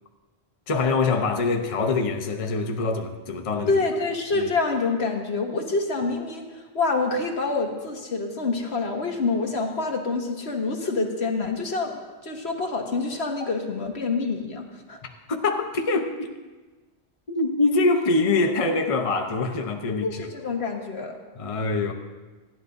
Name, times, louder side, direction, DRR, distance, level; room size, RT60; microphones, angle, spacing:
voice 1, 0.7-3.8 4.3-4.5 15.0-16.3 17.3-20.3 21.4-21.9, left 3 dB, 35° left, 4 dB, 0.8 m, -24 dB
voice 2, 3.7-15.0 20.0-21.2, left 3 dB, 70° left, 2 dB, 1.7 m, -27 dB
28.5 x 10.5 x 2.7 m, 1.3 s
omnidirectional pair, 1.1 m